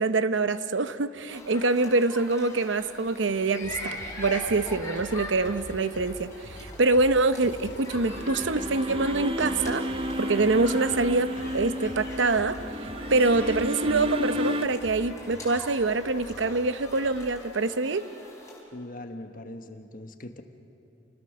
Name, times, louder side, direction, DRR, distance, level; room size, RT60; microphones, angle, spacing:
voice 1, 0.0-9.8 10.2-12.6 13.1-18.1, right 3 dB, 70° right, 12 dB, 0.8 m, -25 dB
sound 1, 1.3-18.6, left 1 dB, 15° left, 5.1 m, -43 dB
sound 2, 3.6-17.8, left 1 dB, 75° left, 2.1 m, -45 dB
sound 3, 7.7-14.7, equal, 30° right, 0.8 m, -32 dB
voice 2, 18.7-20.4, left 1 dB, 45° left, 7 dB, 1.3 m, -41 dB
29.5 x 20.0 x 6.5 m, 2.8 s
head